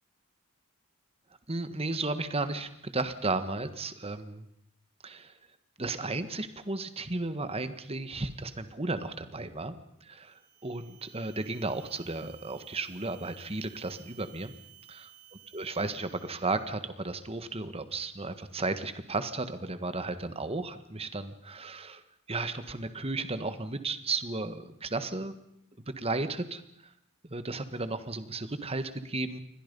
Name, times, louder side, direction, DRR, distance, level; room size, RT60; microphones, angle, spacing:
voice 1, 1.5-4.5 5.0-5.4 5.8-9.7 10.0-14.5 15.5-22.0 22.3-25.3 25.9-26.9 27.2-29.4, right 3 dB, 25° right, 11 dB, 1.5 m, -34 dB
sound 1, 10.2-16.8, right 13 dB, 45° right, 5.6 m, -56 dB
29.0 x 23.5 x 5.4 m, 0.77 s
head